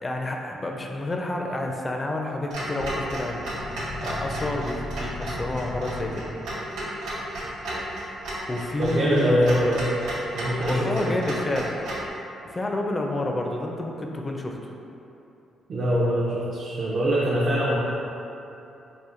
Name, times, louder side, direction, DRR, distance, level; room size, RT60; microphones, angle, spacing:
voice 1, 0.0-3.4 4.0-6.2 6.6-6.7 8.5-9.6 10.7-11.7 12.4-14.7, left 2 dB, 25° left, 1 dB, 0.4 m, -29 dB
Clock, 2.5-12.1, right 1 dB, 85° right, 0.8 m, -33 dB
sound 1, 3.5-7.6, left 2 dB, 85° left, 0.6 m, -37 dB
voice 2, 8.8-9.9 10.3-11.1 15.7-17.8, equal, 50° right, -7 dB, 0.5 m, -23 dB
4.2 x 2.5 x 2.4 m, 2.9 s
cardioid pair, 90°, 0 cm